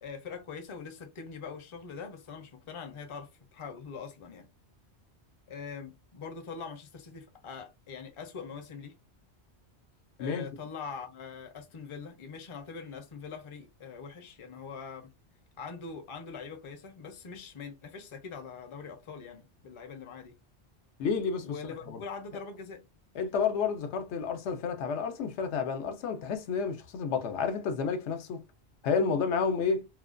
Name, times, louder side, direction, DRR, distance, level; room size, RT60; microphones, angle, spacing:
voice 1, 0.0-4.5 5.5-8.9 10.2-15.1 15.6-20.4 21.4-22.8, left 5 dB, 40° left, 0.5 m, -43 dB
voice 2, 21.0-21.5 21.9-22.0 23.2-28.4 28.8-29.9, left 5 dB, 85° left, 0.9 m, -30 dB
2.4 x 2.1 x 2.4 m
omnidirectional pair, 1.1 m